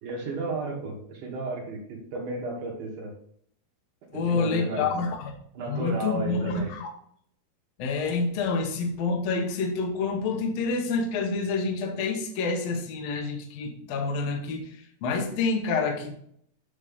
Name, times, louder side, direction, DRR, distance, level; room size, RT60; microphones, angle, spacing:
voice 1, 0.0-3.1 4.1-4.9 5.5-6.7, right 2 dB, 60° right, -1 dB, 2.9 m, -33 dB
voice 2, 4.1-5.3 5.7-6.9 7.8-16.1, left 4 dB, 70° left, 2 dB, 1.6 m, -28 dB
8.8 x 3.4 x 5.3 m, 0.67 s
omnidirectional pair, 4.4 m